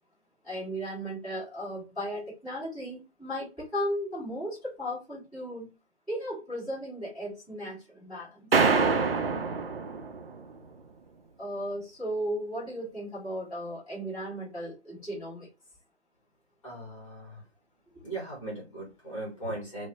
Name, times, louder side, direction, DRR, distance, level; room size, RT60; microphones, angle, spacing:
voice 1, 0.4-5.7 6.1-8.5 11.4-15.5 17.9-18.0, equal, ahead, -19 dB, 1.1 m, -35 dB
sound 1, 8.5-10.5, right 4 dB, 60° right, 0.5 m, -25 dB
voice 2, 16.6-17.4 18.0-19.9, right 2 dB, 30° left, -4 dB, 1.1 m, -38 dB
2.7 x 2.0 x 2.8 m, 0.29 s
figure-of-eight pair, 150°, 35 cm